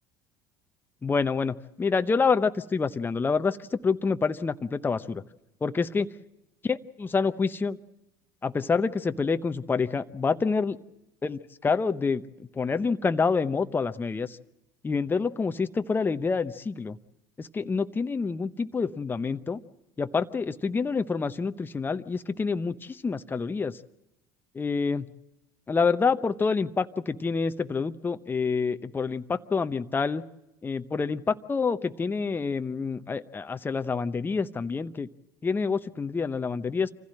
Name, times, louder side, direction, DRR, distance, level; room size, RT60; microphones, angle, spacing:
voice 1, 1.0-5.2 5.6-6.1 6.6-7.8 8.4-10.8 11.2-12.2 12.6-14.4 14.8-17.0 17.4-19.6 20.0-23.8 24.5-25.1 25.7-30.2 30.6-35.1 35.4-36.9, left 5 dB, 20° left, 10 dB, 0.8 m, -27 dB
26.0 x 15.5 x 7.6 m, 0.93 s
hypercardioid pair, 75°, 10 cm